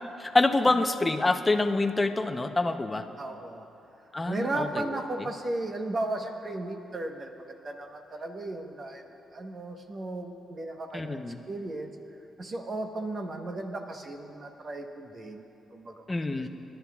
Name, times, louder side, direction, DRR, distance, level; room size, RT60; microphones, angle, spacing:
voice 1, 0.2-3.1 4.1-4.9 10.9-11.4 16.1-16.5, left 2 dB, 20° left, 6 dB, 0.7 m, -26 dB
voice 2, 3.2-3.7 4.3-9.0 9.3-11.2 11.5-11.9 12.4-15.4 15.7-16.1, right 2 dB, 40° right, 4 dB, 1.0 m, -35 dB
28.5 x 11.5 x 2.4 m, 2.8 s
cardioid pair, 85°, 0 cm